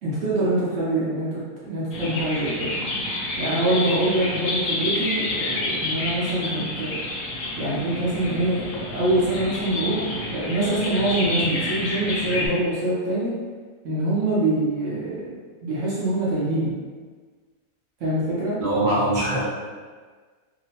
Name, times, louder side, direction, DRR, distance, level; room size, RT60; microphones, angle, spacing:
voice 1, 0.0-2.7 3.4-7.0 7.6-13.3 13.8-15.3 15.6-16.7 18.0-18.6, right 1 dB, 65° right, -8 dB, 1.0 m, -24 dB
sound 1, 1.9-12.5, left 2 dB, 70° left, 0.4 m, -29 dB
voice 2, 18.6-19.4, right 1 dB, 45° right, -8 dB, 0.8 m, -22 dB
2.8 x 2.1 x 2.8 m, 1.5 s
omnidirectional pair, 1.4 m